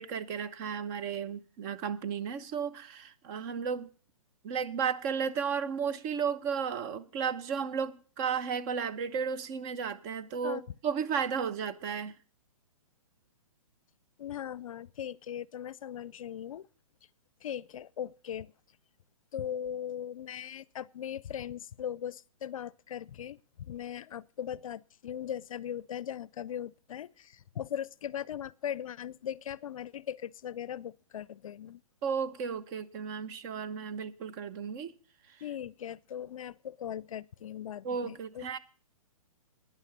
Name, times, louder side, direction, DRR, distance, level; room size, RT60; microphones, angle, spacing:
voice 1, 0.0-3.9 4.4-12.1 32.0-34.9 37.8-38.6, right 6 dB, 30° right, 0.8 m, -34 dB
voice 2, 14.2-16.7 17.4-18.5 19.3-31.8 35.4-38.6, left 9 dB, 65° left, 0.5 m, -39 dB
11.0 x 9.8 x 6.8 m
hypercardioid pair, 145°, 19 cm